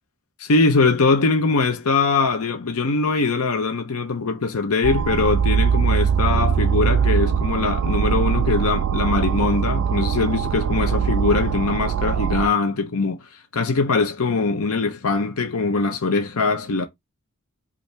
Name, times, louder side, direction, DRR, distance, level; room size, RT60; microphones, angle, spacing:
voice 1, 0.4-13.2 13.5-16.9, left 4 dB, 75° left, 0.7 m, -22 dB
sound 1, 4.8-12.5, right 7 dB, 65° right, 0.3 m, -21 dB
5.4 x 2.7 x 3.4 m
head